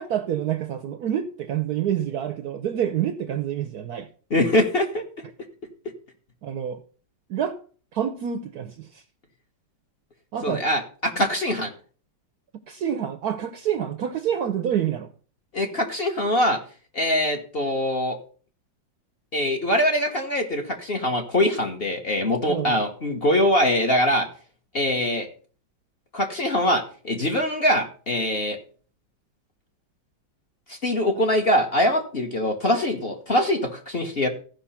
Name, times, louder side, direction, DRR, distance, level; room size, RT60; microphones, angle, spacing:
voice 1, 0.0-4.1 6.4-6.8 7.3-7.6 7.9-9.0 10.3-10.6 12.7-15.1 22.5-22.8, right 9 dB, 65° right, 1.0 m, -27 dB
voice 2, 4.3-5.0 10.4-11.7 15.5-16.6 16.9-18.2 19.3-24.3 24.7-25.3 26.1-28.6 30.7-34.3, left 1 dB, 35° left, 1.2 m, -23 dB
14.5 x 5.4 x 5.6 m
omnidirectional pair, 2.2 m